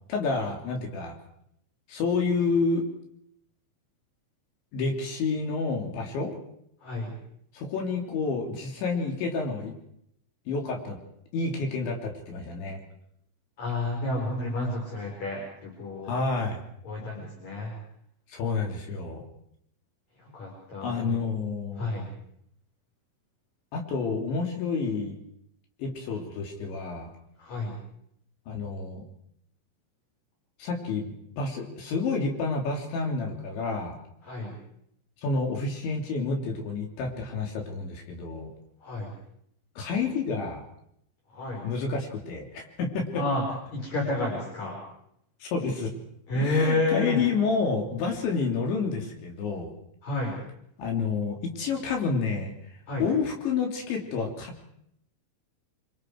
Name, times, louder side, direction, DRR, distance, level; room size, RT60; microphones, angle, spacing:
voice 1, 0.1-1.1 1.9-2.9 4.7-6.3 7.6-9.7 10.5-11.0 11.3-12.8 16.1-16.6 18.3-19.2 20.8-22.0 23.7-25.2 25.8-27.1 28.5-29.0 30.6-34.0 35.2-38.5 39.8-40.6 41.6-43.2 45.4-45.9 46.4-49.7 50.8-52.5 53.0-54.7, left 4 dB, 80° left, 2 dB, 5.5 m, -29 dB
voice 2, 6.8-7.1 13.6-16.2 16.8-17.7 20.2-21.2 21.8-22.1 27.4-27.8 34.2-34.6 38.8-39.1 41.3-41.7 43.1-43.4 43.7-44.8 46.3-47.2 50.0-50.4 52.9-53.1, left 2 dB, 40° left, -1 dB, 5.6 m, -30 dB
28.5 x 24.0 x 4.7 m, 0.73 s
omnidirectional pair, 5.2 m